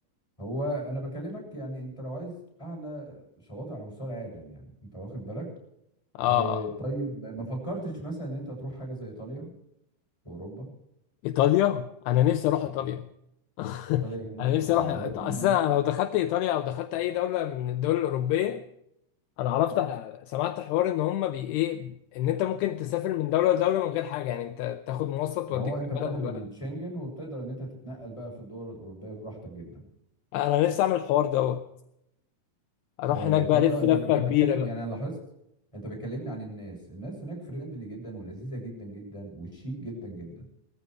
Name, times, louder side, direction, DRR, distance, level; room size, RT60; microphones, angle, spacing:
voice 1, 0.4-5.5 6.2-9.5 10.2-10.7 12.8-12.9 14.0-15.6 25.5-29.9 33.1-34.1 34.4-35.2 35.7-40.5, right 1 dB, 5° left, 6.8 m, -36 dB
voice 2, 6.2-6.6 11.2-13.1 13.6-14.1 14.4-18.6 19.4-26.4 30.3-31.7 33.0-34.7, left 13 dB, 80° left, 2.5 m, -26 dB
19.5 x 14.5 x 4.8 m
omnidirectional pair, 5.5 m